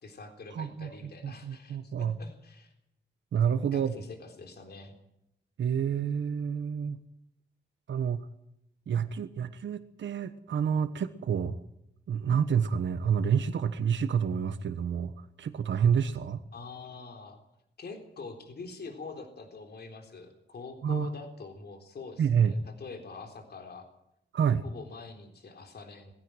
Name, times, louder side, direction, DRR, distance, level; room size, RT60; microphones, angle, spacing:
voice 1, 0.0-2.7 3.7-4.9 16.5-17.4 17.8-23.9 24.6-26.1, left 4 dB, 60° left, 4 dB, 3.8 m, -45 dB
voice 2, 0.6-0.9 1.2-2.1 3.3-3.9 5.6-7.0 7.9-8.3 8.9-11.6 12.1-15.1 15.4-16.4 20.8-21.1 22.2-22.5 24.3-24.6, right 7 dB, 90° right, 10 dB, 1.2 m, -28 dB
21.5 x 16.0 x 9.1 m, 0.79 s
wide cardioid pair, 120°, 19 cm